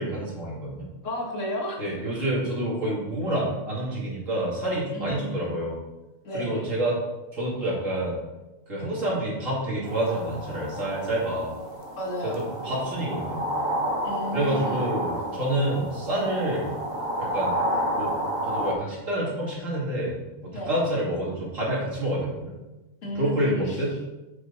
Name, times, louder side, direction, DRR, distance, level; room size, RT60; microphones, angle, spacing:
voice 1, 0.0-0.9 1.8-5.8 6.3-7.0 7.3-8.2 8.7-11.6 12.2-13.5 14.3-16.8 17.2-17.6 18.0-18.1 18.5-22.5 23.1-23.9, right 1 dB, 85° right, -5 dB, 3.0 m, -28 dB
voice 2, 1.0-1.8 4.9-5.6 6.2-6.7 12.0-12.5 14.0-14.8 20.5-20.8 23.0-23.8, equal, 75° left, 0 dB, 1.9 m, -33 dB
sound 1, 9.8-18.7, equal, 50° right, 1.4 m, -30 dB
8.0 x 6.2 x 4.0 m, 1.1 s
omnidirectional pair, 1.3 m